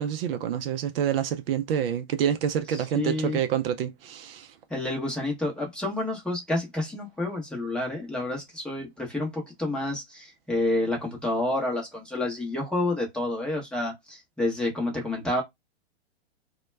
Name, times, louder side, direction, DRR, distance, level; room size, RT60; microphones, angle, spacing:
voice 1, 0.0-4.5, right 9 dB, 60° right, 0.5 m, -27 dB
voice 2, 2.7-3.4 4.7-15.4, left 2 dB, 5° left, 0.8 m, -29 dB
2.2 x 2.1 x 3.1 m
hypercardioid pair, 140°, 33 cm